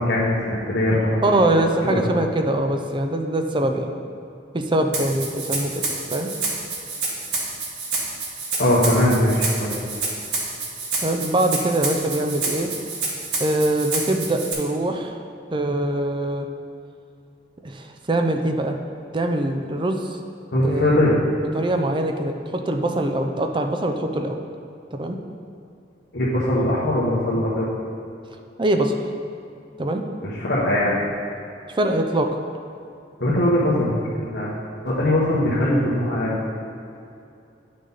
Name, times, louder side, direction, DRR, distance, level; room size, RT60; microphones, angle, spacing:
voice 1, 0.0-2.2 8.6-9.8 20.5-21.1 26.1-27.7 30.2-30.9 33.2-33.9 34.2-34.5 34.8-36.4, left 1 dB, 65° left, -9 dB, 1.4 m, -21 dB
voice 2, 1.2-3.9 4.5-5.8 6.1-6.3 11.0-12.7 13.4-15.2 15.5-16.5 17.6-18.8 19.1-20.1 20.6-21.0 21.5-24.4 24.9-25.2 28.6-29.0 29.8-30.0 31.7-32.3, right 1 dB, 30° right, 4 dB, 0.6 m, -23 dB
Rattle (instrument), 4.9-14.5, right 3 dB, 85° right, 1.9 m, -28 dB
9.6 x 6.4 x 4.0 m, 2.6 s
head